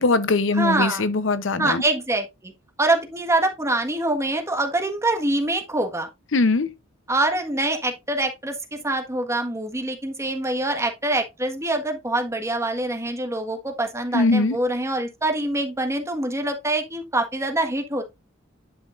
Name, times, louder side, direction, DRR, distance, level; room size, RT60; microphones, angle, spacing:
voice 1, 0.0-1.8 6.3-6.7 14.1-14.6, left 3 dB, 70° left, 0.8 m, -21 dB
voice 2, 0.6-1.0 1.6-2.5 2.8-6.1 7.1-18.0, right 2 dB, 15° right, 1.5 m, -25 dB
10.5 x 5.8 x 2.5 m
head